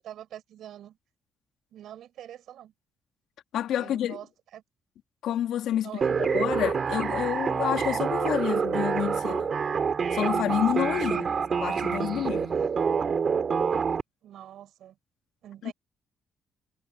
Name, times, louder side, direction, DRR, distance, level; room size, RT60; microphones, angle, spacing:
voice 1, 0.0-1.0 1.7-2.7 3.8-4.6 5.8-6.2 11.1-11.4 14.2-15.0 15.4-15.7, right 11 dB, 75° right, 6.9 m, -44 dB
voice 2, 3.5-4.2 5.2-9.5 10.1-11.3 11.6-12.5 15.6-15.7, left 11 dB, 80° left, 3.2 m, -29 dB
sound 1, 6.0-14.0, right 6 dB, 45° right, 4.1 m, -27 dB
cardioid pair, 90°, 0 cm